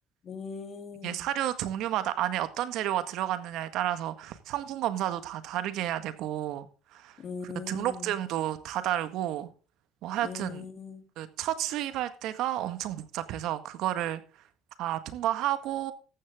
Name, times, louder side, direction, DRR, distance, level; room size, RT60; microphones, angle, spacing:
voice 1, 0.2-1.2 7.2-8.1 10.2-11.0, left 5 dB, 40° left, 3.2 m, -40 dB
voice 2, 1.0-6.7 6.9-7.2 7.7-9.5 10.0-10.7 11.2-14.2 14.8-15.9, right 12 dB, 70° right, 1.8 m, -31 dB
14.5 x 10.5 x 3.8 m
cardioid pair, 110°, 0 cm